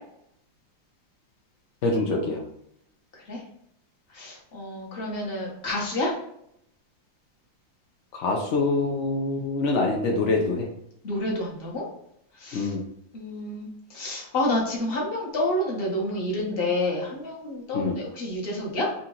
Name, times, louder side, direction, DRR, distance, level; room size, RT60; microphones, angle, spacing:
voice 1, 1.8-2.4 8.1-10.7 12.5-12.8 17.7-18.0, left 3 dB, 90° left, 0 dB, 0.6 m, -25 dB
voice 2, 4.1-6.1 11.0-11.9 12.4-12.7 13.1-13.7 13.9-18.9, left 1 dB, 40° left, -2 dB, 0.9 m, -29 dB
3.9 x 2.9 x 3.7 m, 0.74 s
omnidirectional pair, 2.1 m